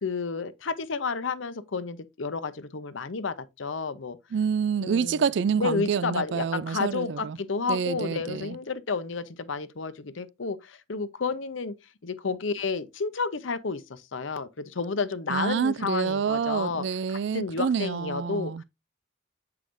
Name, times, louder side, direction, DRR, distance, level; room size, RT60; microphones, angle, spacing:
voice 1, 0.0-4.2 4.8-5.3 5.6-11.7 12.0-18.6, left 4 dB, 80° left, 0.7 m, -31 dB
voice 2, 4.3-7.4 7.7-8.6 15.3-18.6, right 6 dB, 60° right, 0.3 m, -27 dB
7.7 x 4.8 x 2.6 m
head